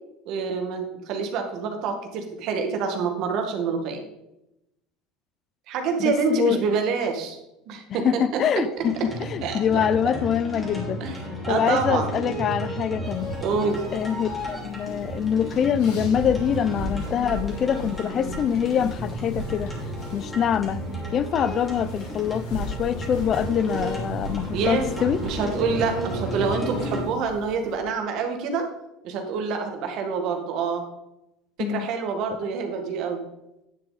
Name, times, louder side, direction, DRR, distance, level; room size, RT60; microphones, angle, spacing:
voice 1, 0.2-4.0 5.7-7.4 7.7-8.6 9.4-9.9 11.0-12.1 13.4-13.8 24.5-24.9 25.2-28.7 29.0-30.8 31.7-33.2, right 5 dB, 50° right, 1.8 m, -27 dB
voice 2, 6.0-6.6 8.0-11.0 11.5-13.4 13.9-19.7 20.1-20.8 21.1-25.2 31.6-31.9, left 8 dB, 35° left, 0.4 m, -25 dB
sound 1, 8.8-27.0, equal, 10° left, 2.7 m, -33 dB
sound 2, 13.0-27.8, left 1 dB, 75° left, 3.2 m, -39 dB
10.0 x 6.8 x 4.1 m
cardioid pair, 145°, 0 cm